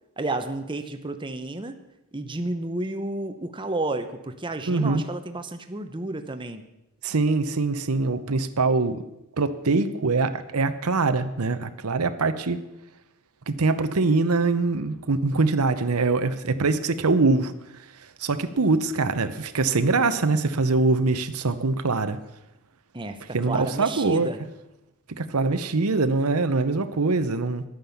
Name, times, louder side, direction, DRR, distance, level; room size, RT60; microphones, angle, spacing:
voice 1, 0.2-1.8 2.1-6.7 22.9-24.4, right 2 dB, 20° right, 7 dB, 0.8 m, -31 dB
voice 2, 4.7-5.0 7.0-9.0 9.4-12.6 13.5-17.5 18.2-22.2 23.3-24.3 25.1-27.6, right 3 dB, 80° right, 11 dB, 0.9 m, -23 dB
11.5 x 9.4 x 7.1 m, 0.90 s
head